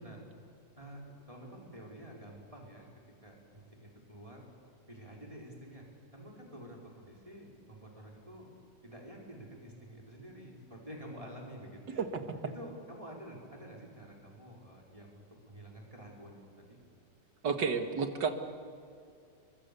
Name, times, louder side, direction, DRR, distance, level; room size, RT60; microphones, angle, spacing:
voice 1, 0.8-2.9 3.2-4.5 4.9-5.8 6.1-8.5 8.8-12.1 12.5-16.8, equal, 20° right, -2 dB, 4.7 m, -49 dB
voice 2, 17.4-18.3, right 5 dB, 85° right, 7 dB, 2.4 m, -30 dB
30.0 x 23.5 x 6.9 m, 2.4 s
omnidirectional pair, 1.8 m